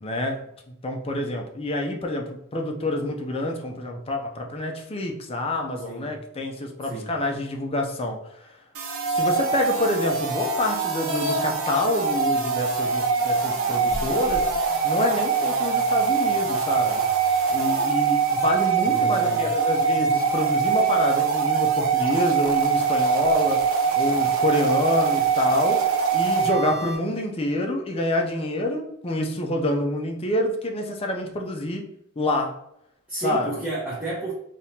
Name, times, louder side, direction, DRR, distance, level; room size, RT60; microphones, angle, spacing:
voice 1, 0.0-0.5 0.8-8.5 9.1-14.5 14.8-17.0 17.5-23.7 23.9-31.9 32.2-32.6 33.2-33.5, left 1 dB, 25° left, 2 dB, 0.5 m, -27 dB
sound 1, 8.7-27.0, right 6 dB, 65° right, 0.7 m, -23 dB
sound 2, 11.1-11.4 12.4-12.5 13.2-13.3 13.9-14.6, left 2 dB, 30° right, 1.0 m, -30 dB
voice 2, 18.8-19.4 33.1-34.3, right 2 dB, 5° right, -9 dB, 0.7 m, -31 dB
3.6 x 2.8 x 2.7 m, 0.75 s
head